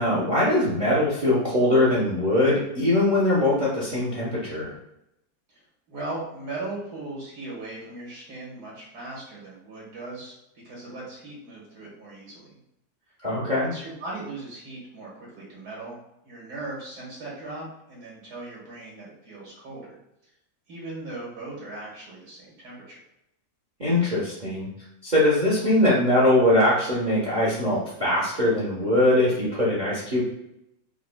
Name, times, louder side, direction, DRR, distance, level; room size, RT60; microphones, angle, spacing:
voice 1, 0.0-4.7 13.2-13.7 23.8-24.7 25.0-30.2, left 1 dB, 40° right, -6 dB, 0.6 m, -22 dB
voice 2, 5.5-12.6 13.1-13.2 13.6-16.0 16.2-20.0 20.7-23.0, right 2 dB, 65° right, -5 dB, 2.0 m, -38 dB
4.9 x 2.3 x 2.2 m, 0.82 s
omnidirectional pair, 1.9 m